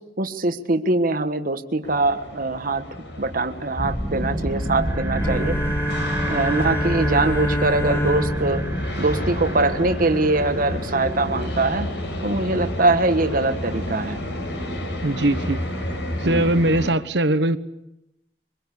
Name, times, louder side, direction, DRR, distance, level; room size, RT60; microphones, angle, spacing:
voice 1, 0.2-2.8 3.2-5.6 6.2-8.6 9.0-11.9 12.2-14.2 16.2-16.5, right 2 dB, 55° right, 8 dB, 1.4 m, -22 dB
sound 1, 1.8-16.9, equal, 85° left, 5.4 m, -31 dB
sound 2, 3.8-11.9, right 1 dB, 15° right, 2.8 m, -29 dB
Bowed string instrument, 5.2-10.1, left 1 dB, 15° left, 1.2 m, -28 dB
voice 2, 15.0-15.6 16.2-17.6, right 1 dB, 75° right, 12 dB, 1.3 m, -20 dB
24.5 x 21.5 x 8.4 m, 0.85 s
head